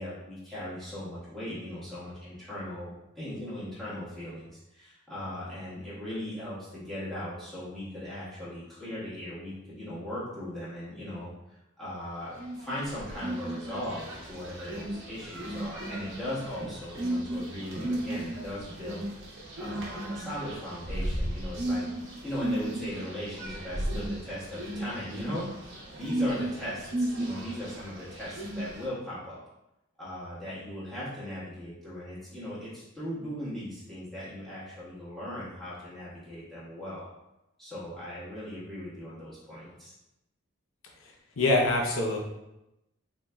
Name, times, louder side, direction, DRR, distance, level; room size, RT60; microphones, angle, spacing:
voice 1, 0.0-11.3 11.8-19.1 19.6-21.9 22.2-29.4 30.0-37.1 37.6-39.9, left 1 dB, ahead, -11 dB, 1.4 m, -38 dB
sound 1, 12.3-28.8, right 1 dB, 70° right, 0.8 m, -35 dB
voice 2, 41.0-42.2, left 2 dB, 80° left, 0 dB, 0.6 m, -26 dB
3.9 x 3.0 x 2.3 m, 0.89 s
head